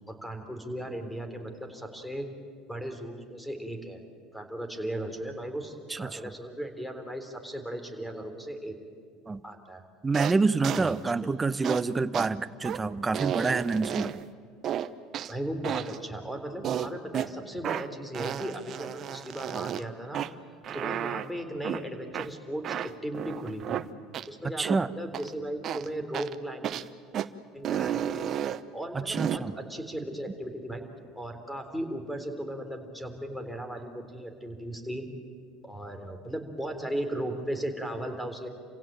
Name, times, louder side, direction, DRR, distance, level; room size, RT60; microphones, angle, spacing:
voice 1, 0.1-2.3 2.7-4.0 4.3-8.8 9.4-9.8 10.7-11.3 15.3-20.2 20.7-23.8 24.3-26.8 27.5-28.3 28.7-30.8 31.2-35.1 35.6-38.5, right 1 dB, 5° left, 7 dB, 3.7 m, -36 dB
voice 2, 10.0-14.1 24.6-24.9 28.9-29.5, right 4 dB, 20° right, 16 dB, 0.8 m, -27 dB
sound 1, 10.1-10.4 10.6-10.9 11.6-11.8 12.1-12.3 12.6-12.8 13.1-14.2 14.6-15.3 15.6-16.0 16.6-17.3 17.6-17.9 18.1-19.8 20.1-20.3 20.6-21.3 21.6-21.8 22.1-22.3 22.6-23.8 24.1-24.3 24.6-24.8 25.1-25.3 25.6-25.9 26.1-26.4 26.6-26.9 27.1-27.3 27.6-28.6 29.1-29.4, right 10 dB, 45° right, 0.8 m, -32 dB
28.0 x 16.5 x 9.0 m, 2.2 s
hypercardioid pair, 85°, 0 cm